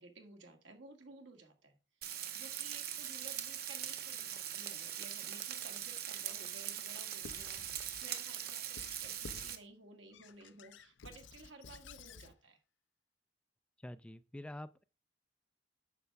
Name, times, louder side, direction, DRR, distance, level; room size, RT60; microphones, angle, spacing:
voice 1, 0.0-1.8 2.3-12.6, right 3 dB, 80° right, 1.8 m, -56 dB
Frying (food), 2.0-9.6, right 10 dB, 55° right, 1.0 m, -41 dB
sound 1, 3.8-8.7, right 3 dB, 20° right, 0.7 m, -60 dB
Squeak / Writing, 7.2-8.1 8.8-9.6 10.1-12.3, left 4 dB, 75° left, 0.6 m, -53 dB
voice 2, 13.8-14.8, left 1 dB, 5° left, 0.3 m, -47 dB
9.5 x 6.8 x 3.5 m
head